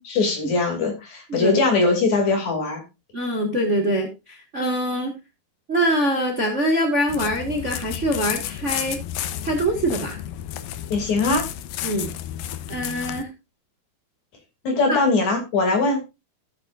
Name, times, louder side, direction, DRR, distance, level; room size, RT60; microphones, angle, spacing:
voice 1, 0.0-2.8 10.9-11.5 14.6-16.0, left 3 dB, 50° left, 3 dB, 3.7 m, -21 dB
voice 2, 1.3-1.6 3.1-5.1 5.7-9.0 9.4-10.2 11.8-12.1 12.7-13.3 14.9-15.0, equal, 75° right, 2 dB, 0.6 m, -24 dB
sound 1, 7.1-13.2, left 11 dB, 75° left, 2.2 m, -32 dB
14.5 x 8.5 x 2.5 m, 0.26 s
omnidirectional pair, 4.6 m